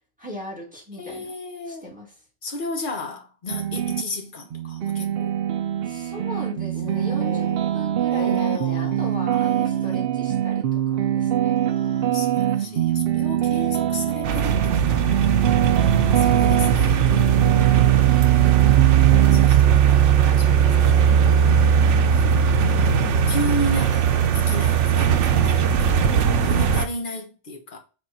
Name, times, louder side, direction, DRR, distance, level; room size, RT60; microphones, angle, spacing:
voice 1, 0.2-1.3 1.7-2.1 5.8-7.5 7.7-11.7 17.5-20.4 26.4-26.8, equal, 5° right, 2.6 m, -39 dB
voice 2, 1.0-1.8 2.4-5.4 6.7-10.0 11.5-15.5 15.8-17.0 17.4-26.1 26.4-27.8, left 2 dB, 45° left, 1.3 m, -35 dB
sound 1, 3.5-4.0 4.5-19.5, right 11 dB, 60° right, 0.8 m, -24 dB
sound 2, 14.2-26.9, right 8 dB, 90° right, 1.0 m, -18 dB
6.7 x 3.6 x 4.3 m
omnidirectional pair, 1.2 m